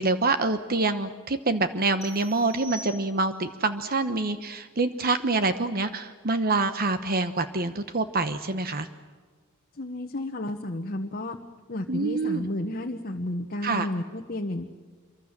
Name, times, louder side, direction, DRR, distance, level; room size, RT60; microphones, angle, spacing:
voice 1, 0.0-8.9 11.9-12.5 13.6-13.9, right 3 dB, 45° right, 10 dB, 1.0 m, -26 dB
sound 1, 2.0-3.5, right 1 dB, 15° left, 3.3 m, -44 dB
voice 2, 9.8-11.4 11.7-14.6, left 1 dB, 45° left, 3 dB, 1.2 m, -32 dB
27.0 x 24.0 x 7.5 m, 1.4 s
head